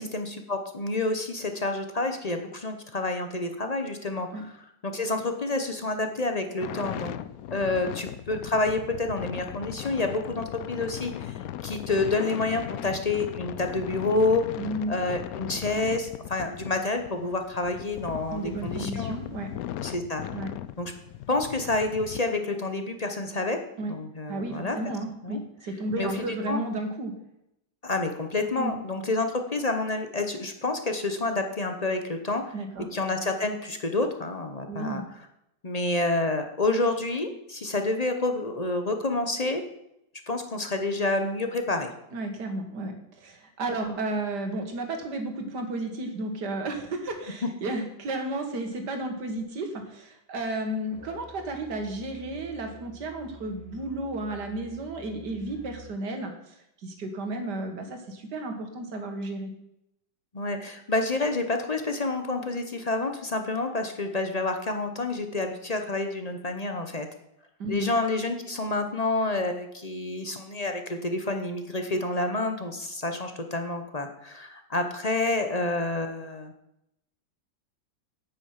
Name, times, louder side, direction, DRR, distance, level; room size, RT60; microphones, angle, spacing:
voice 1, 0.0-4.5 4.8-7.2 7.5-14.5 14.9-19.2 19.8-20.2 20.8-20.9 21.3-23.6 23.9-24.8 25.2-25.4 26.0-26.6 27.8-32.5 32.9-35.0 35.6-39.6 40.3-41.9 43.8-44.0 47.4-47.5 60.3-67.1 67.7-76.5, left 2 dB, 35° left, 6 dB, 0.6 m, -28 dB
sound 1, 6.6-22.2, left 12 dB, 70° left, 0.8 m, -38 dB
voice 2, 14.6-15.0 18.3-19.5 20.3-20.5 23.8-24.0 24.3-27.1 28.6-28.7 32.5-32.9 34.7-35.0 42.1-59.5 67.6-68.0, right 2 dB, 65° right, 4 dB, 2.1 m, -33 dB
Musical instrument, 50.9-56.1, equal, 10° left, 1.1 m, -49 dB
9.0 x 8.9 x 5.8 m, 0.82 s
omnidirectional pair, 2.0 m